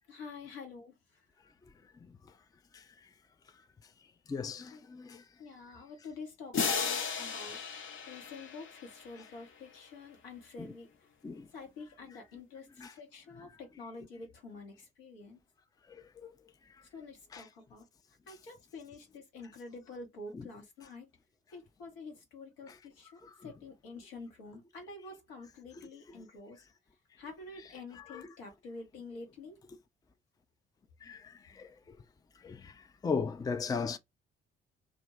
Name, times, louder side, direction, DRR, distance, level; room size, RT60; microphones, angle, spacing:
voice 1, 0.1-1.2 4.7-4.8 5.4-11.1 11.5-15.4 16.9-17.9 18.3-21.1 21.5-26.6 27.2-29.6, left 3 dB, 80° left, 1.0 m, -48 dB
voice 2, 4.3-5.2 10.6-10.7 11.2-11.5 12.8-12.9 15.9-16.3 17.3-17.4 20.3-20.5 22.7-22.8 23.2-23.3 28.0-28.3 31.0-32.0 32.4-34.0, left 5 dB, 15° left, 0.4 m, -38 dB
sound 1, 6.5-9.4, left 5 dB, 45° left, 0.8 m, -35 dB
2.5 x 2.1 x 3.0 m
figure-of-eight pair, 45°, 29 cm